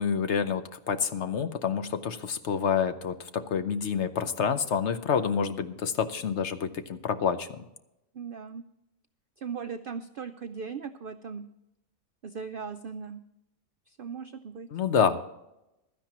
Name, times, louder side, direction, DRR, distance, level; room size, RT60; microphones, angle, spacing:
voice 1, 0.0-7.6 14.7-15.2, left 7 dB, 60° left, 10 dB, 1.0 m, -28 dB
voice 2, 8.1-8.6 9.4-11.4 12.2-13.2 13.9-14.7, right 6 dB, 65° right, 9 dB, 0.5 m, -38 dB
16.0 x 12.5 x 2.9 m, 0.89 s
omnidirectional pair, 1.5 m